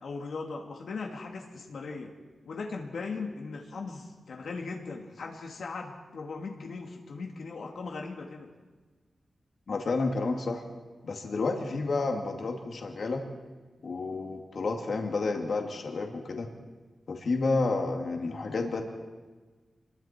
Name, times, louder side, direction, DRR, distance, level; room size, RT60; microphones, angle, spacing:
voice 1, 0.0-2.1 2.5-8.5, left 4 dB, 80° left, 1 dB, 2.2 m, -38 dB
voice 2, 9.7-10.6 11.0-13.2 13.8-16.5 17.1-18.8, left 3 dB, 60° left, 2 dB, 2.4 m, -30 dB
28.0 x 22.0 x 4.5 m, 1.3 s
wide cardioid pair, 160°, 0 cm